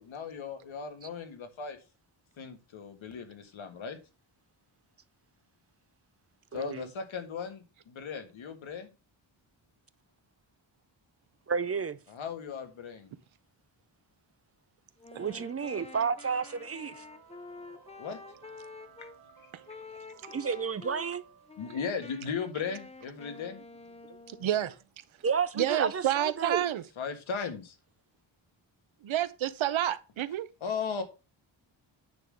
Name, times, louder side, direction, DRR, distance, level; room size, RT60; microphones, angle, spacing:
voice 1, 0.0-1.8 2.4-4.0 6.5-8.9 12.1-13.1 18.0-18.2 21.6-23.6 27.0-27.8 30.6-31.0, left 6 dB, 85° left, 1.8 m, -37 dB
voice 2, 6.5-6.9 11.5-12.0 15.2-17.0 20.3-21.2 25.2-26.6, right 6 dB, 30° right, 0.5 m, -31 dB
Wind instrument woodwind instrument, 15.0-19.2 19.7-21.1 21.5-24.7, left 3 dB, 15° left, 0.6 m, -48 dB
voice 3, 15.1-15.4 24.3-24.8 25.5-26.8 29.0-30.5, right 12 dB, 85° right, 0.9 m, -29 dB
sound 1, 15.2-22.2, right 7 dB, 55° right, 3.0 m, -58 dB
9.5 x 3.8 x 6.3 m
wide cardioid pair, 140°, 46 cm